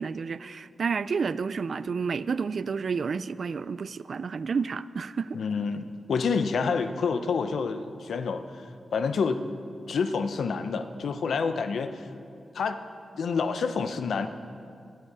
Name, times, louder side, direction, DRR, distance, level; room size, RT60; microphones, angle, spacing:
voice 1, 0.0-5.4, right 5 dB, 60° right, 15 dB, 0.3 m, -30 dB
voice 2, 5.3-8.7 8.9-9.4 9.9-12.1 12.5-12.8 13.1-14.3, left 5 dB, 85° left, 9 dB, 0.7 m, -28 dB
20.5 x 7.8 x 4.8 m, 2.4 s
wide cardioid pair, 95°, 0 cm